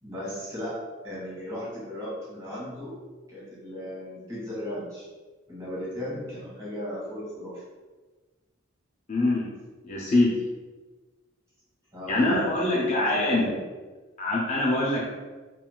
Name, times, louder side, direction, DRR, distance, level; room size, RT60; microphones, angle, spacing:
voice 1, 0.0-3.0 3.3-5.1 5.5-7.6 11.9-13.6, left 1 dB, 15° right, -8 dB, 1.4 m, -36 dB
voice 2, 9.1-9.5 9.8-10.4 12.1-13.5 14.2-15.0, left 2 dB, 35° left, -4 dB, 0.4 m, -24 dB
3.7 x 2.3 x 2.2 m, 1.3 s
head